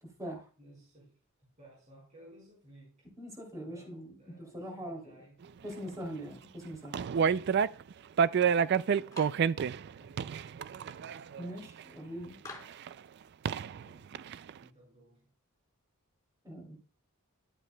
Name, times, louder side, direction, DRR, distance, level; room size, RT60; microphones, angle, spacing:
voice 1, 0.0-0.5 3.2-5.1 5.6-7.0 11.3-12.4 16.4-16.8, equal, 15° right, 2 dB, 2.9 m, -42 dB
voice 2, 0.6-3.1 3.6-5.9 13.6-14.1 14.6-15.3, right 1 dB, 30° right, -5 dB, 5.1 m, -59 dB
sound 1, 6.8-7.9 8.2-11.8 12.9-13.0 13.4-13.8 14.1-14.5, right 7 dB, 50° right, 0.3 m, -29 dB
Clapping, 9.1-9.5 12.4-12.9, left 3 dB, 15° left, 3.5 m, -47 dB
12.0 x 8.1 x 2.2 m, 0.37 s
head